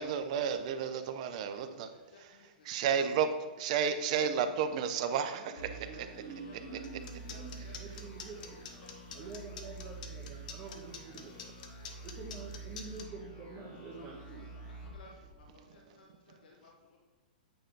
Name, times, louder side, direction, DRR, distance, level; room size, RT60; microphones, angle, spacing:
voice 1, 0.0-1.9 2.2-2.4 2.6-3.3 3.6-5.7, right 7 dB, 50° right, 9 dB, 0.6 m, -32 dB
voice 2, 1.3-1.6 1.9-3.0 5.7-6.0 6.5-6.8 7.3-8.1 8.4-8.5 8.8-8.9 9.2-9.3 10.5-10.8 14.0-14.4 14.8-17.0, left 3 dB, 80° left, -1 dB, 1.1 m, -58 dB
voice 3, 5.3-8.6 9.1-11.3 12.0-14.5, right 4 dB, 30° right, 1 dB, 1.3 m, -47 dB
sound 1, 5.6-15.9, right 3 dB, 25° left, 1.8 m, -48 dB
sound 2, 6.8-13.0, left 7 dB, 60° left, 0.8 m, -46 dB
8.7 x 3.8 x 3.9 m, 1.3 s
hypercardioid pair, 135°, 5 cm